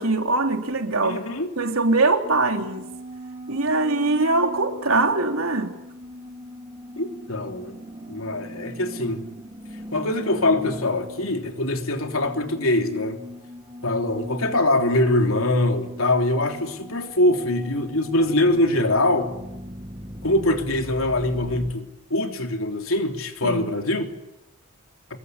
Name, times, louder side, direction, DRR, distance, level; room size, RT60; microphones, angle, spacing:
voice 1, 0.0-2.9 3.5-5.7 23.4-23.7, right 3 dB, 90° right, 3.4 m, -22 dB
voice 2, 1.0-1.5 7.0-9.2 9.9-13.2 13.8-19.3 20.2-24.1, left 1 dB, 75° left, 3.4 m, -23 dB
sound 1, 2.2-21.7, equal, 25° right, 2.1 m, -40 dB
27.0 x 22.0 x 9.7 m
head